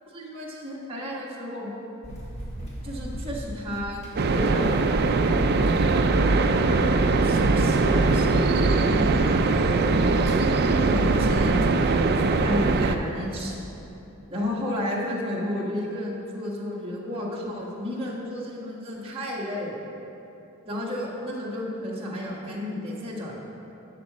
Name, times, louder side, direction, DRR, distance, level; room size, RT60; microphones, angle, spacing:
voice 1, 0.1-1.7 2.8-4.0 4.3-6.1 6.7-10.2 10.8-13.6 14.3-19.8 20.6-23.4, left 1 dB, 25° right, -5 dB, 1.6 m, -32 dB
Run, 2.0-13.4, equal, 30° left, 1.7 m, -41 dB
sound 1, 4.2-13.0, right 3 dB, 50° right, 0.4 m, -21 dB
11.5 x 7.3 x 4.1 m, 3.0 s
head